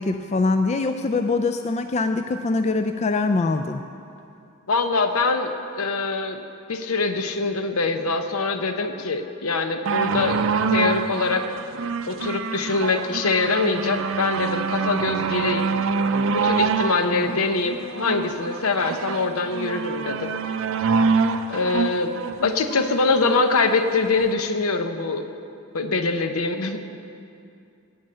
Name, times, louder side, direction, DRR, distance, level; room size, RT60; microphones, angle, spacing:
voice 1, 0.0-3.8 17.1-17.3, left 3 dB, 30° left, 7 dB, 0.4 m, -23 dB
voice 2, 4.7-6.4 6.7-10.4 10.7-11.5 12.1-15.7 16.3-20.3 21.5-22.1 22.4-25.2 25.7-26.8, left 3 dB, 70° left, 7 dB, 0.8 m, -23 dB
sound 1, 9.9-23.4 24.2-24.3, right 5 dB, 65° right, 0.5 m, -25 dB
15.0 x 5.5 x 8.8 m, 2.6 s
head